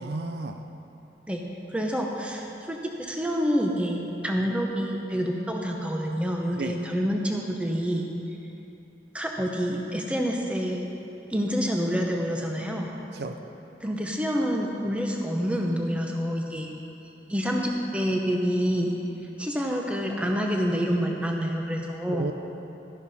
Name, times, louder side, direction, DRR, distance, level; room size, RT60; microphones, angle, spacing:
voice 1, 0.0-0.6 6.6-6.8 13.1-13.4 22.1-22.3, right 3 dB, 70° right, 7 dB, 0.5 m, -32 dB
voice 2, 1.7-8.1 9.1-10.9 11.3-12.9 13.8-16.7 17.3-18.9 19.4-22.3, equal, 5° right, 0 dB, 0.8 m, -27 dB
12.0 x 10.5 x 4.2 m, 2.9 s
head